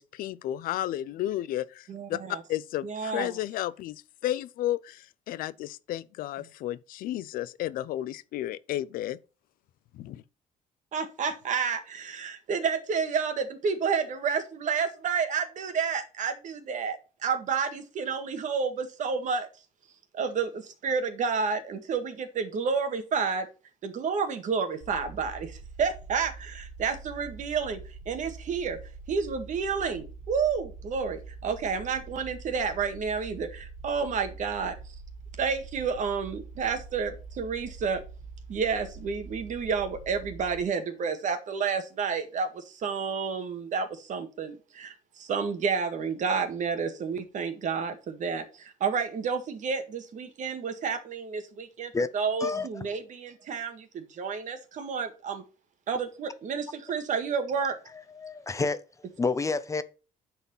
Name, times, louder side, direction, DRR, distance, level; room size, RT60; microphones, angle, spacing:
voice 1, 0.0-9.2 9.9-10.2, left 13 dB, 85° left, 0.6 m, -33 dB
voice 2, 1.9-2.4 2.8-3.4 10.9-19.5 20.1-23.5 23.8-27.8 28.0-28.8 29.1-34.7 35.4-38.0 38.5-55.4 55.9-57.8, right 5 dB, 60° right, 1.8 m, -30 dB
sound 1, 24.8-40.6, right 4 dB, 80° right, 1.5 m, -45 dB
voice 3, 58.2-58.8 59.2-59.8, left 3 dB, 20° left, 0.7 m, -28 dB
9.8 x 4.2 x 5.5 m
cardioid pair, 115°, 14 cm